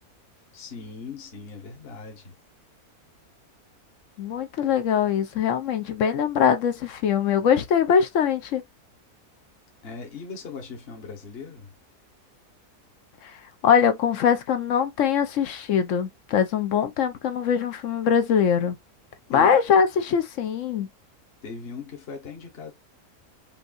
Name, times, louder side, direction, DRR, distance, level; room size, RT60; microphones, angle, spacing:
voice 1, 0.5-2.3 9.8-11.7 19.3-19.6 21.4-22.7, left 4 dB, 45° left, 1.3 m, -39 dB
voice 2, 4.2-8.6 13.6-18.8 19.3-20.9, left 7 dB, 65° left, 0.9 m, -22 dB
5.3 x 2.7 x 2.4 m
omnidirectional pair, 1.6 m